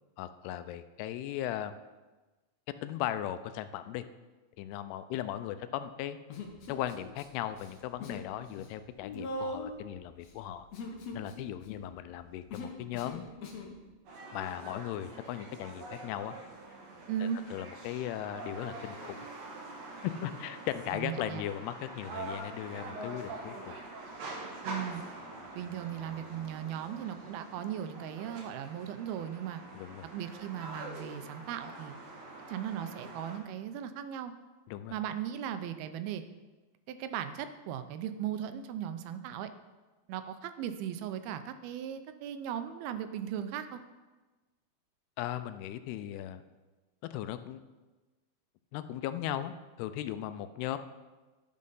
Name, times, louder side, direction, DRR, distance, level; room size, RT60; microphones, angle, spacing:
voice 1, 0.2-1.8 2.8-4.0 4.6-6.2 6.7-10.7 11.1-13.2 14.3-16.4 17.2-19.2 20.0-23.8 29.7-30.1 34.7-35.0 45.2-46.4 47.0-47.6 48.7-50.8, left 12 dB, 85° left, 11 dB, 2.5 m, -37 dB
Human voice, 6.3-7.2 7.5-8.3 8.5-13.7, left 2 dB, 70° left, 1.6 m, -41 dB
sound 1, 14.1-33.4, right 2 dB, 60° right, 1.9 m, -45 dB
voice 2, 17.1-17.4 20.9-21.5 24.6-25.0 25.6-29.6 30.1-32.0 32.5-34.3 34.9-36.2 36.9-39.5 40.1-43.8, right 9 dB, 80° right, 10 dB, 2.4 m, -37 dB
10.5 x 6.3 x 5.5 m, 1.2 s
omnidirectional pair, 4.6 m